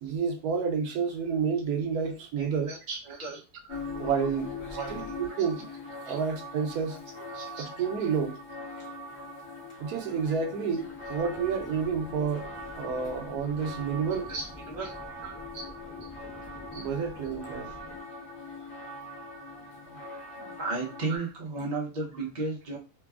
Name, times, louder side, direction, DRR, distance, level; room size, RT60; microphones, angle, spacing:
voice 1, 0.0-2.7 3.9-4.5 4.9-5.7 6.1-7.0 7.6-8.4 9.8-14.3 15.2-15.4 16.7-17.7 21.1-21.2, right 6 dB, 80° right, 1.1 m, -30 dB
voice 2, 2.4-3.4 4.7-5.7 6.0-6.3 6.7-7.0 7.3-7.7 14.0-14.9 15.5-15.6 16.7-17.0 20.4-22.8, right 3 dB, 40° right, 0.7 m, -36 dB
sound 1, 3.7-21.2, left 2 dB, 50° left, 1.0 m, -41 dB
sound 2, 10.7-18.0, left 1 dB, ahead, 0.6 m, -49 dB
3.2 x 2.2 x 2.3 m
omnidirectional pair, 1.7 m